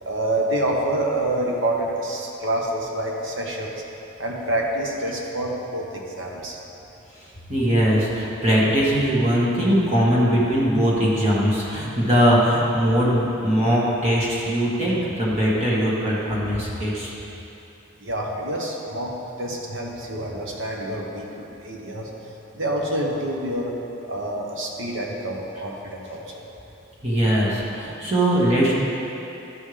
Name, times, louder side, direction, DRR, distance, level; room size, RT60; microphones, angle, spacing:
voice 1, 0.0-3.8 4.2-6.6 18.0-22.1 22.5-23.7 24.1-26.4, right 1 dB, 70° right, -1 dB, 1.1 m, -27 dB
voice 2, 7.5-17.1 27.0-28.7, equal, 30° right, -7 dB, 1.6 m, -20 dB
12.5 x 5.5 x 3.4 m, 2.9 s
head